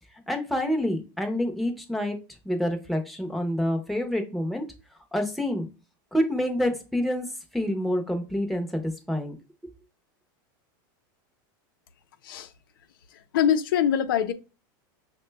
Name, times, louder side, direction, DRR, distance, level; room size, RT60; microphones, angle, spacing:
voice 1, 0.3-2.2 2.4-4.6 5.1-5.7 6.1-7.3 7.5-9.3, equal, ahead, 0.7 m, -27 dB
voice 2, 13.3-14.3, left 9 dB, 85° left, 0.5 m, -23 dB
5.7 x 2.2 x 3.2 m
supercardioid pair, 145°, 11 cm